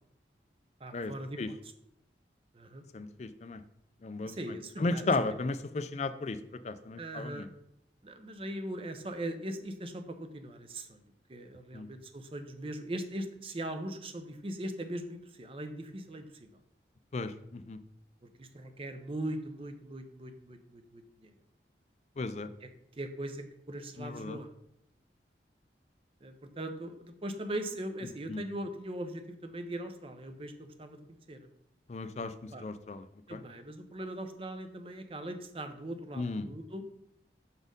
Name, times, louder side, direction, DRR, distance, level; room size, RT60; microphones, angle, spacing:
voice 1, 0.8-1.7 2.5-2.8 4.3-5.1 7.0-7.5 8.0-11.0 11.3-16.5 18.2-21.3 22.6-24.5 26.2-31.5 32.5-32.6 33.3-36.8, right 1 dB, 30° right, 7 dB, 0.6 m, -40 dB
voice 2, 2.9-3.6 4.0-4.3 4.8-6.4 6.6-7.5 11.7-11.9 17.1-17.8 22.2-22.5 24.0-24.4 28.3-28.4 31.9-33.0 33.3-33.4 36.2-36.5, left 3 dB, 40° left, 12 dB, 0.4 m, -34 dB
6.1 x 4.2 x 5.2 m, 0.77 s
head